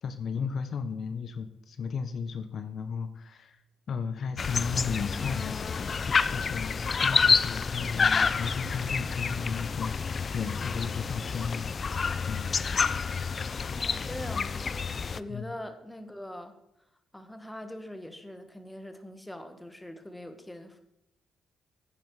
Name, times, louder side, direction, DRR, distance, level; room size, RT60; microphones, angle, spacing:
voice 1, 0.0-3.6 3.9-5.6 6.3-11.7 12.3-12.5 15.3-15.5, left 5 dB, 55° left, 10 dB, 0.8 m, -34 dB
sound 1, 4.4-15.2, left 5 dB, 40° left, 0.4 m, -28 dB
voice 2, 6.9-7.2 13.5-16.5 17.1-20.8, left 1 dB, 5° left, 8 dB, 1.4 m, -43 dB
10.0 x 9.6 x 4.7 m, 0.84 s
cardioid pair, 90°, 0 cm